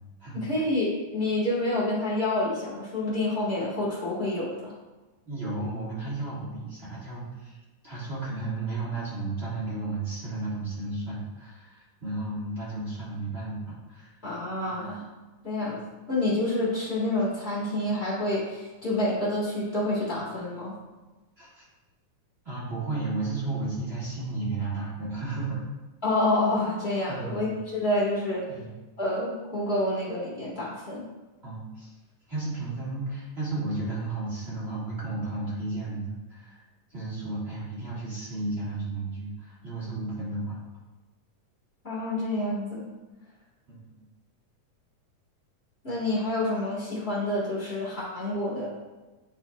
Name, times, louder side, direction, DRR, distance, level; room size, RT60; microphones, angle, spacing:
voice 1, 0.3-4.7 14.2-15.0 15.4-20.7 26.0-28.5 29.0-31.1 41.8-42.8 45.8-48.7, left 1 dB, 35° left, -8 dB, 1.0 m, -28 dB
voice 2, 5.2-7.6 7.8-14.1 14.6-14.9 21.4-21.6 22.4-25.6 27.1-27.5 28.5-28.7 31.4-31.9 32.3-36.6 36.9-40.6 43.7-44.0, right 3 dB, 30° right, -9 dB, 1.2 m, -33 dB
10.5 x 4.2 x 2.3 m, 1.2 s
omnidirectional pair, 3.8 m